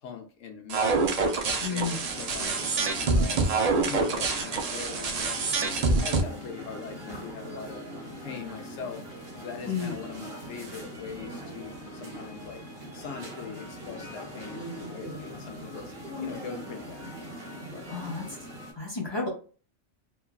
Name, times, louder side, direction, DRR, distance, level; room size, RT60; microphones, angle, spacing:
voice 1, 0.0-1.2 1.4-3.4 3.7-7.8 8.2-9.0 9.4-12.6 12.9-15.9 16.2-17.1 17.7-18.0, left 6 dB, 85° left, 1.0 m, -41 dB
sound 1, 0.7-6.2, right 3 dB, 75° right, 0.3 m, -26 dB
sound 2, 1.4-18.7, equal, 45° right, 1.2 m, -41 dB
voice 2, 1.6-2.0 9.7-10.0 17.9-18.2 18.8-19.3, left 5 dB, 35° left, 0.5 m, -31 dB
3.1 x 2.3 x 2.2 m
omnidirectional pair, 1.3 m